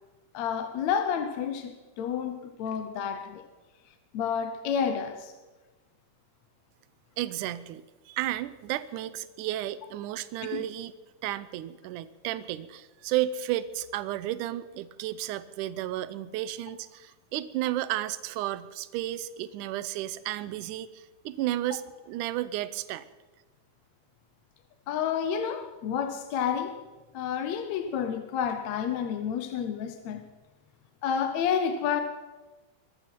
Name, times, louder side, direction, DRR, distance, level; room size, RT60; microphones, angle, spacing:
voice 1, 0.3-3.4 4.1-5.3 10.5-10.7 24.9-26.8 27.1-30.2 31.0-32.0, left 7 dB, 70° left, 1.9 m, -30 dB
voice 2, 7.2-10.9 11.2-23.1, right 13 dB, 80° right, 2.1 m, -33 dB
22.0 x 14.5 x 4.5 m
omnidirectional pair, 3.9 m